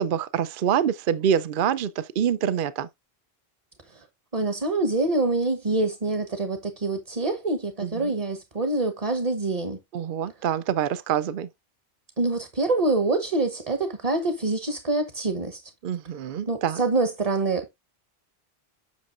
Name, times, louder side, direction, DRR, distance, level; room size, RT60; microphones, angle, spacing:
voice 1, 0.0-2.9 7.8-8.1 9.9-11.5 15.8-16.8, right 9 dB, 60° right, 0.8 m, -26 dB
voice 2, 4.3-9.8 12.2-15.7 16.2-17.7, right 2 dB, 35° right, 1.1 m, -26 dB
8.3 x 6.3 x 2.5 m
omnidirectional pair, 1.1 m